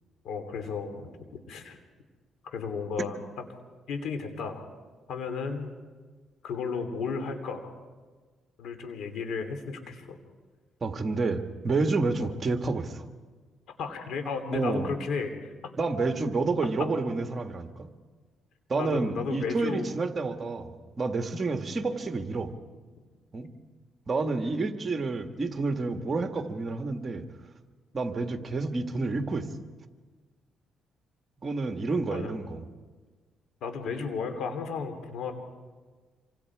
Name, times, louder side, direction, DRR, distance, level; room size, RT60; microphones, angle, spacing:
voice 1, 0.2-1.8 2.4-3.2 3.9-4.7 5.1-5.7 6.4-7.7 8.6-10.2 13.8-15.5 18.7-19.9 32.1-32.4 33.6-35.3, left 5 dB, 75° left, 7 dB, 3.3 m, -34 dB
voice 2, 10.8-13.0 14.5-15.0 15.8-17.9 18.7-22.5 23.3-23.5 24.1-27.2 27.9-29.5 31.4-32.6, right 3 dB, 35° right, 6 dB, 1.8 m, -29 dB
27.0 x 25.5 x 4.9 m, 1.4 s
cardioid pair, 90°, 0 cm